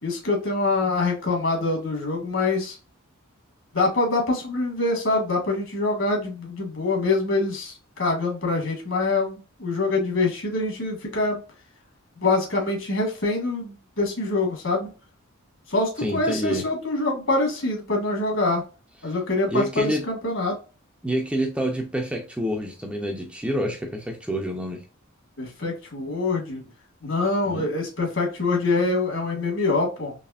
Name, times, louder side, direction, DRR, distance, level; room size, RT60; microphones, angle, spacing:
voice 1, 0.0-2.8 3.7-11.4 12.2-14.9 15.7-18.6 19.0-20.5 25.4-26.6 27.0-30.1, left 3 dB, 60° left, 1 dB, 1.7 m, -25 dB
voice 2, 16.0-16.6 19.5-20.0 21.0-24.8 27.5-27.7, equal, 5° right, 2 dB, 0.5 m, -27 dB
4.1 x 3.1 x 2.5 m, 0.34 s
head